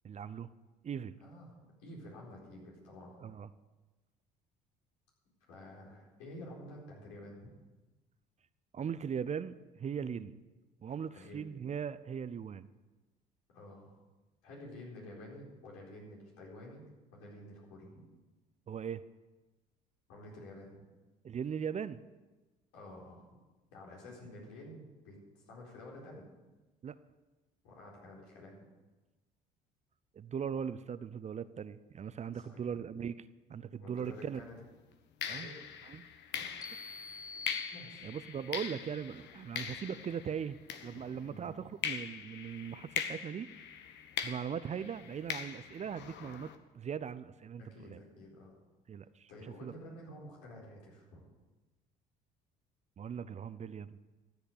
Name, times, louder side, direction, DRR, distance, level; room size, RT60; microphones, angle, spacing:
voice 1, 0.0-0.5 0.8-1.2 3.2-3.5 8.7-10.4 10.8-12.7 18.7-19.0 21.2-22.0 26.8-26.9 30.1-34.4 35.3-35.5 35.8-36.1 38.0-43.5 44.2-48.0 48.9-49.3 49.6-49.7 53.0-54.0, right 7 dB, 35° right, 15 dB, 0.6 m, -39 dB
voice 2, 1.2-1.5 1.8-3.2 5.5-7.5 10.0-10.2 11.1-11.5 13.5-13.9 14.4-16.8 17.1-18.0 20.1-20.8 22.7-23.2 23.7-26.3 27.6-28.6 32.3-32.7 33.8-34.6 35.2-35.7 36.3-36.5 37.7-38.1 41.1-41.6 47.6-48.7 49.3-51.3, left 1 dB, 75° left, -3 dB, 4.3 m, -50 dB
sound 1, 34.1-34.3 35.2-41.4 41.8-46.6, left 8 dB, 60° left, 1.2 m, -42 dB
sound 2, 36.6-38.5, left 3 dB, 15° left, 0.4 m, -46 dB
13.5 x 8.1 x 6.8 m, 1.2 s
hypercardioid pair, 60°, 21 cm